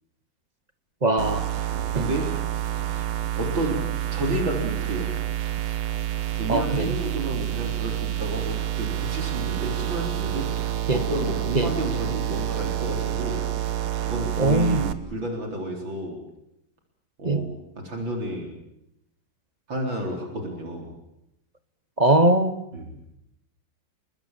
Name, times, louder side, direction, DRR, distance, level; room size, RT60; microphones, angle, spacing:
voice 1, 1.0-1.5 1.9-2.1 6.5-6.9 10.9-11.0 11.5-11.7 14.4-14.8 17.2-17.5 22.0-22.6, right 2 dB, 30° right, 11 dB, 0.9 m, -21 dB
sound 1, 1.2-14.9, right 12 dB, 90° right, 2.2 m, -28 dB
voice 2, 1.7-2.3 3.4-5.1 6.3-10.5 10.9-13.4 14.0-16.2 17.2-18.6 19.7-20.9 22.7-22.9, right 1 dB, 65° right, 2 dB, 4.7 m, -31 dB
30.0 x 21.0 x 7.4 m, 0.83 s
omnidirectional pair, 2.3 m